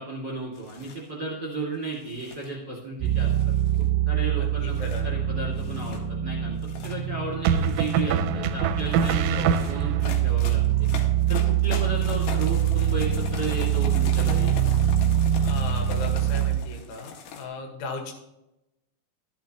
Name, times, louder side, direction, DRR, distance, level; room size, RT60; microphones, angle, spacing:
voice 1, 0.0-3.3 3.8-4.7 5.0-6.6 6.8-10.6 11.3-14.5, right 3 dB, 35° right, -5 dB, 1.7 m, -34 dB
sound 1, 0.5-1.0 1.9-2.5 3.2-4.0 4.7-5.0 5.6-6.0 6.5-7.0 7.5-8.1 8.8-17.5, left 6 dB, 70° left, 2.9 m, -41 dB
sound 2, 3.0-16.6, right 10 dB, 70° right, 2.3 m, -24 dB
voice 2, 4.4-5.1 9.2-9.7 15.4-18.1, left 3 dB, 85° left, 3 dB, 3.9 m, -37 dB
sound 3, 4.8-5.4 7.4-10.1, right 8 dB, 90° right, 3.0 m, -25 dB
13.0 x 11.0 x 3.0 m, 0.92 s
omnidirectional pair, 5.4 m